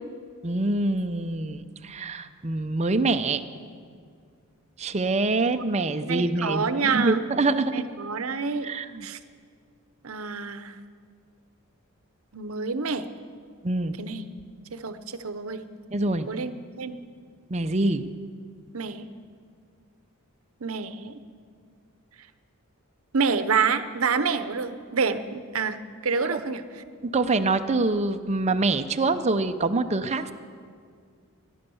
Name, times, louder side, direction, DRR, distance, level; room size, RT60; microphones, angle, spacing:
voice 1, 0.4-3.4 4.8-7.7 8.6-9.1 13.6-14.0 15.9-16.3 17.5-18.0 26.3-26.4 27.0-30.3, right 2 dB, 30° right, 8 dB, 0.6 m, -25 dB
voice 2, 6.1-7.2 7.7-8.7 9.0-9.2 10.0-10.8 12.3-13.1 14.0-14.2 14.7-15.6 16.3-17.0 18.7-19.1 20.6-21.2 23.1-26.6, right 5 dB, 70° right, 11 dB, 0.8 m, -28 dB
16.5 x 11.0 x 7.0 m, 2.1 s
head